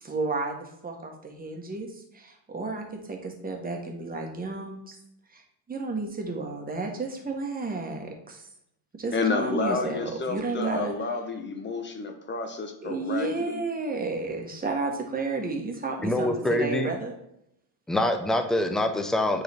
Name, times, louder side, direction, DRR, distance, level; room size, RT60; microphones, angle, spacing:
voice 1, 0.0-5.0 5.3-5.4 5.7-8.5 9.0-10.9 12.8-17.1, right 3 dB, 20° right, 2 dB, 1.3 m, -32 dB
voice 2, 9.1-13.6, left 4 dB, 25° left, 6 dB, 1.0 m, -30 dB
voice 3, 16.0-16.9 17.9-19.4, left 1 dB, ahead, 6 dB, 0.5 m, -25 dB
9.4 x 3.9 x 3.5 m, 0.77 s
cardioid pair, 125°, 48 cm